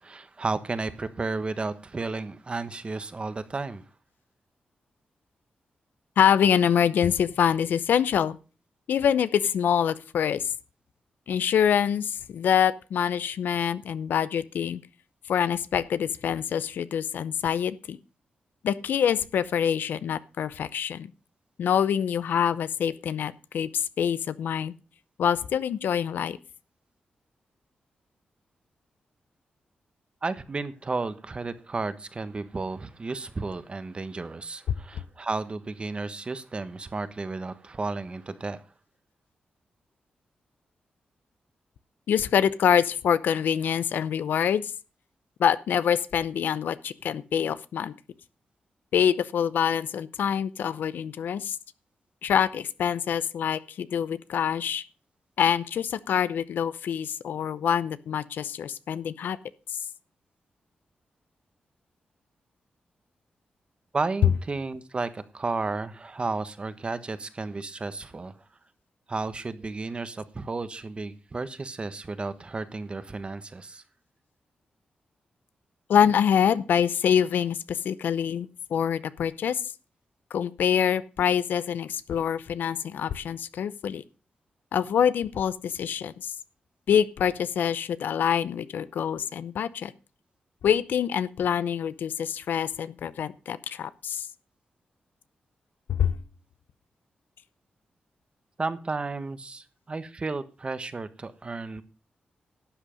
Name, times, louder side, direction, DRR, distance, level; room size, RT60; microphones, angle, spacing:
voice 1, 0.0-3.8 30.2-38.6 63.9-68.3 69.1-73.8 98.6-101.8, right 3 dB, 35° right, 1.2 m, -33 dB
voice 2, 6.2-8.4 8.9-10.5 11.3-14.8 15.3-18.0 18.6-21.1 21.6-24.7 25.2-26.4 42.1-44.6 45.4-47.9 48.9-51.6 52.2-54.8 55.4-59.4 75.9-79.6 80.3-84.0 84.7-86.3 86.9-89.9 90.6-94.3 95.9-96.2, left 8 dB, 90° left, 0.6 m, -25 dB
12.0 x 8.3 x 5.2 m
cardioid pair, 90°, 3 cm